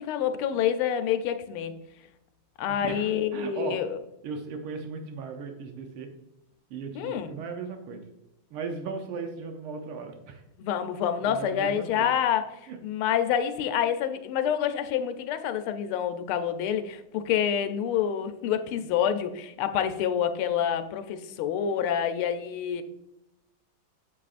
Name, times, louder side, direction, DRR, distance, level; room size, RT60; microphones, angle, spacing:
voice 1, 0.0-1.8 2.6-4.0 6.9-7.3 10.6-12.4 12.8-22.8, left 9 dB, 90° left, 9 dB, 1.5 m, -27 dB
voice 2, 2.7-3.8 4.2-6.1 6.7-8.0 8.5-10.4 11.3-12.1 12.7-12.8, right 5 dB, 85° right, 4 dB, 1.6 m, -37 dB
8.3 x 7.7 x 2.5 m, 0.88 s
omnidirectional pair, 2.3 m